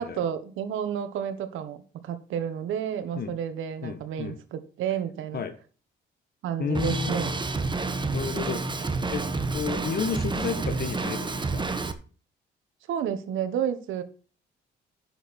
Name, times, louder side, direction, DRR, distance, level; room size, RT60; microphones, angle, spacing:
voice 1, 0.0-5.4 6.4-7.4 12.9-14.0, right 9 dB, 85° right, 10 dB, 1.4 m, -31 dB
voice 2, 3.8-4.4 5.3-5.5 6.6-7.3 8.1-8.6 9.1-9.2 9.5-11.6, left 6 dB, 55° left, 9 dB, 1.4 m, -31 dB
Drum kit, 6.7-11.9, right 3 dB, 25° right, 1.3 m, -29 dB
10.0 x 6.7 x 4.4 m, 0.38 s
cardioid pair, 90°, 20 cm